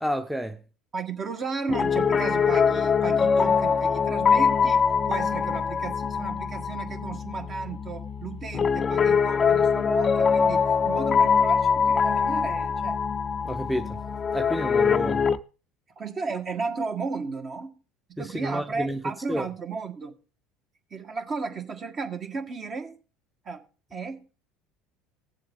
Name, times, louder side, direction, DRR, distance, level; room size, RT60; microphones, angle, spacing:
voice 1, 0.0-0.6 13.4-14.0 14.3-15.2 18.2-19.0 19.3-19.5, equal, ahead, 0.8 m, -29 dB
voice 2, 0.9-4.8 5.1-13.0 16.0-17.7 18.2-20.2 20.9-22.9 23.4-23.6 23.9-24.2, right 4 dB, 35° right, 1.6 m, -34 dB
Piano, 1.7-15.4, left 6 dB, 35° left, 0.5 m, -23 dB
16.5 x 7.6 x 3.7 m
hypercardioid pair, 75°, 0 cm